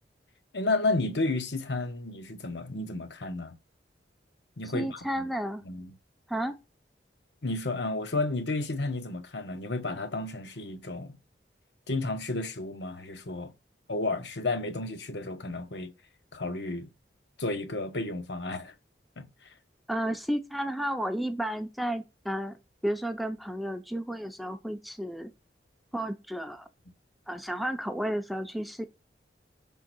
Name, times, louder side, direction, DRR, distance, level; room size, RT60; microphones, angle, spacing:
voice 1, 0.5-3.5 4.6-5.0 5.6-5.9 7.4-11.1 11.9-13.5 13.9-15.9 16.3-16.9 17.4-18.7 19.2-19.3, left 2 dB, 75° left, 1.1 m, -32 dB
voice 2, 4.7-5.6 6.3-6.6 19.9-22.6 22.8-25.3 25.9-26.7 27.3-28.8, right 1 dB, ahead, 0.5 m, -32 dB
6.0 x 3.7 x 6.1 m
head